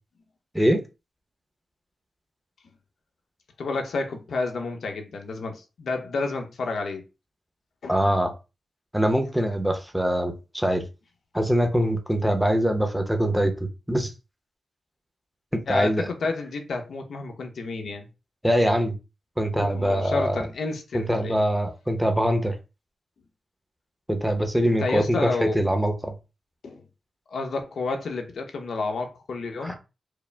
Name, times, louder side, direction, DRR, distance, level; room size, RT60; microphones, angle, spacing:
voice 1, 3.6-7.0 7.8-8.1 15.7-18.1 19.6-21.4 24.6-25.7 26.6-26.8 27.3-29.7, left 3 dB, 75° left, 0.8 m, -30 dB
voice 2, 7.9-8.3 8.9-10.8 11.3-14.1 15.7-16.0 18.4-18.9 19.4-20.4 20.9-22.5 24.1-25.3 25.5-26.1 29.6-29.7, equal, ahead, 0.7 m, -23 dB
4.8 x 2.0 x 3.3 m
wide cardioid pair, 135°, 0 cm